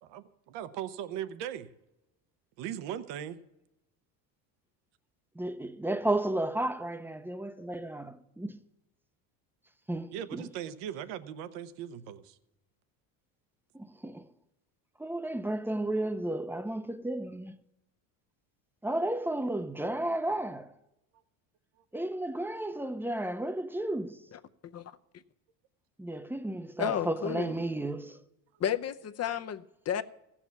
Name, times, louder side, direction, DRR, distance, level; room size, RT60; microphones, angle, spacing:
voice 1, 0.0-1.7 2.6-3.4 10.1-12.4, right 10 dB, 70° right, 1.0 m, -39 dB
voice 2, 5.4-8.6 9.9-10.5 13.7-14.3 15.0-17.5 18.8-20.7 21.9-24.2 26.0-28.2, right 1 dB, 5° right, 0.7 m, -33 dB
voice 3, 26.8-27.5 28.6-30.0, left 9 dB, 35° left, 0.7 m, -32 dB
15.5 x 7.3 x 7.1 m
supercardioid pair, 95°, 44 cm